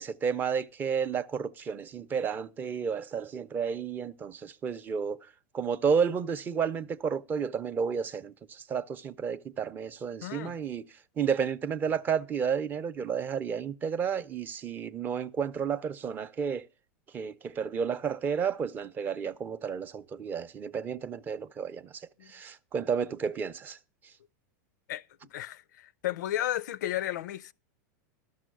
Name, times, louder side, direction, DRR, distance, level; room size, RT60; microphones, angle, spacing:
voice 1, 0.0-5.2 5.5-10.8 11.2-16.6 17.1-21.9 22.3-23.8, right 6 dB, 20° right, 0.4 m, -31 dB
voice 2, 10.2-10.6 22.2-22.3 24.9-25.1 25.3-27.5, left 13 dB, 85° left, 0.4 m, -33 dB
12.5 x 5.5 x 6.2 m
supercardioid pair, 150°, 9 cm